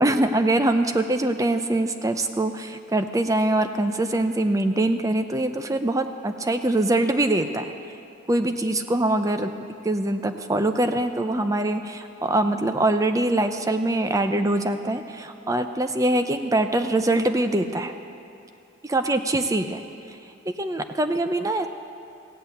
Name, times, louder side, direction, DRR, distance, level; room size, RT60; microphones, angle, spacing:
voice 1, 0.0-7.7 8.3-9.5 9.8-17.9 18.8-19.8 20.1-20.2 20.5-21.7, right 1 dB, 15° right, 8 dB, 0.5 m, -23 dB
16.0 x 8.1 x 8.3 m, 2.6 s
head